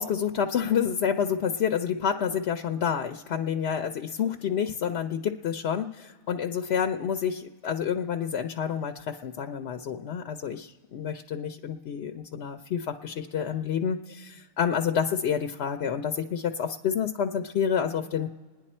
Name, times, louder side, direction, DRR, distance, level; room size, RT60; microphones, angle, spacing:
voice 1, 0.0-18.3, left 7 dB, 75° left, 6 dB, 0.9 m, -29 dB
28.5 x 10.0 x 4.2 m, 1.5 s
omnidirectional pair, 1.1 m